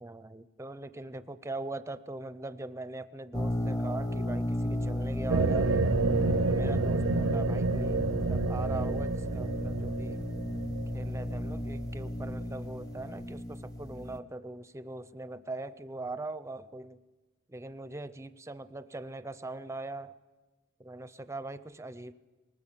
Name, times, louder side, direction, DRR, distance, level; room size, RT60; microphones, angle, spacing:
voice 1, 0.0-5.8 6.5-8.0 8.3-10.2 10.9-17.0 17.5-20.1 20.8-22.1, right 2 dB, 15° right, 14 dB, 0.6 m, -41 dB
sound 1, 3.3-14.2, left 1 dB, 15° left, 0.8 m, -33 dB
sound 2, 5.3-12.6, right 4 dB, 65° right, 0.6 m, -30 dB
20.5 x 19.0 x 7.4 m, 1.2 s
head